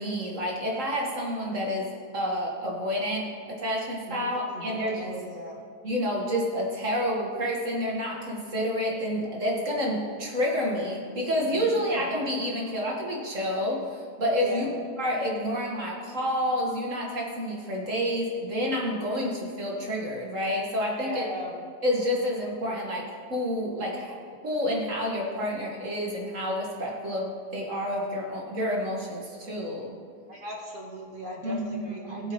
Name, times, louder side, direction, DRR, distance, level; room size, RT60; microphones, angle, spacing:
voice 1, 0.0-1.9 2.1-5.2 5.8-14.7 15.0-21.3 21.8-24.1 24.4-29.9 31.4-32.3, equal, 50° right, -2 dB, 2.1 m, -29 dB
voice 2, 4.1-5.6 11.4-12.3 14.4-14.7 20.9-21.5 30.3-32.3, right 1 dB, 30° right, -2 dB, 1.8 m, -39 dB
19.5 x 7.7 x 3.2 m, 2.2 s
omnidirectional pair, 1.8 m